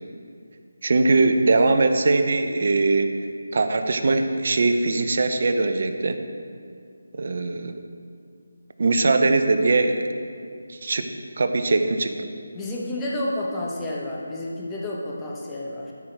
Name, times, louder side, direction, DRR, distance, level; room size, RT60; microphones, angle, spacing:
voice 1, 0.8-3.1 3.5-6.2 7.1-7.8 8.8-10.1 10.7-11.1 11.4-12.3, right 3 dB, 55° right, 7 dB, 0.7 m, -21 dB
voice 2, 12.5-15.9, left 1 dB, 10° left, -4 dB, 1.0 m, -30 dB
13.0 x 6.1 x 3.4 m, 2.3 s
figure-of-eight pair, 165°, 0 cm